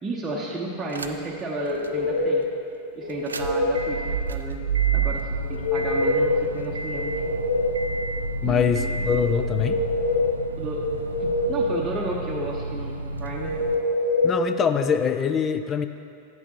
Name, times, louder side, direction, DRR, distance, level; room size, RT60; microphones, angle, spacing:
voice 1, 0.0-2.4 2.9-4.7 4.9-7.1 8.4-9.0 10.6-10.8 11.2-13.5, right 2 dB, 15° right, -4 dB, 0.8 m, -32 dB
sound 1, 0.9-1.4 1.8-1.9 3.1-13.7, right 4 dB, 75° right, 0.3 m, -30 dB
sound 2, 1.6-2.5 3.0-3.8 5.4-6.4 6.8-7.9 9.3-10.3 10.8-11.8 13.4-14.4, left 2 dB, 75° left, 0.8 m, -25 dB
voice 2, 8.4-9.8 14.2-15.9, left 7 dB, 25° left, 9 dB, 0.3 m, -23 dB
8.9 x 8.0 x 3.0 m, 2.4 s
figure-of-eight pair, 90°, 0 cm